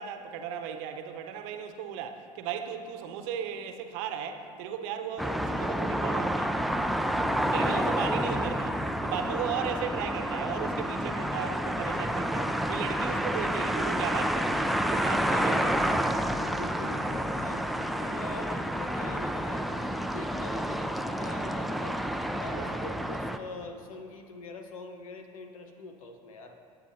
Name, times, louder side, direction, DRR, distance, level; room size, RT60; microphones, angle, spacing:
voice 1, 0.0-6.5 7.5-16.0 17.0-17.1 22.5-22.8, right 8 dB, 65° right, 6 dB, 1.0 m, -36 dB
sound 1, 5.2-23.4, equal, ahead, 0.5 m, -29 dB
voice 2, 7.6-8.1 15.3-15.8 16.2-17.6 18.0-22.0 22.4-26.6, left 3 dB, 80° left, 4 dB, 1.1 m, -43 dB
17.0 x 8.9 x 2.8 m, 2.4 s
hypercardioid pair, 70°, 18 cm